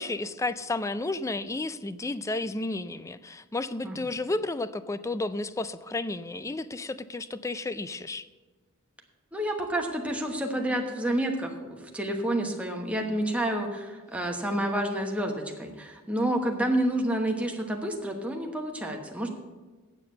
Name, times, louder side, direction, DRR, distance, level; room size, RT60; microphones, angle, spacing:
voice 1, 0.0-8.3, left 2 dB, 15° left, 14 dB, 0.4 m, -32 dB
voice 2, 9.3-19.3, right 1 dB, 5° right, 1 dB, 1.1 m, -29 dB
8.7 x 7.4 x 6.6 m, 1.3 s
head